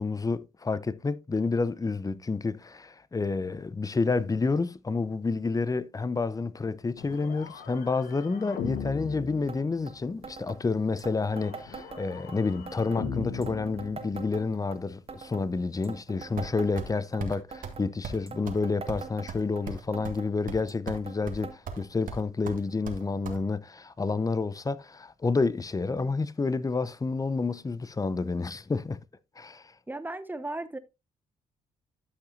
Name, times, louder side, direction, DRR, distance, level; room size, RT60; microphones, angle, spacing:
voice 1, 0.0-29.0 29.4-29.7, left 4 dB, 25° left, 0.7 m, -29 dB
sound 1, 7.0-10.2 11.3-14.6, left 6 dB, 75° left, 1.3 m, -39 dB
sound 2, 9.5-9.6 9.9-10.0 10.2-10.6 11.0-12.4 12.7-13.0 13.4-14.8 15.1-15.5 15.8-17.2 17.5-17.9 18.3-19.6 19.9-20.3 20.7-21.2 21.4-21.6 21.8-21.9 22.7-22.8 23.6-23.7, right 5 dB, 40° right, 2.0 m, -43 dB
sound 3, 16.4-16.9 17.2-17.4 17.6-17.8 18.0-18.2 18.5-18.6 18.9-20.2 20.5-21.0 21.3-21.8 22.1-23.4, right 5 dB, 65° right, 1.7 m, -37 dB
voice 2, 29.9-30.8, right 2 dB, 10° right, 1.1 m, -35 dB
12.5 x 5.5 x 2.6 m
supercardioid pair, 55°, 15 cm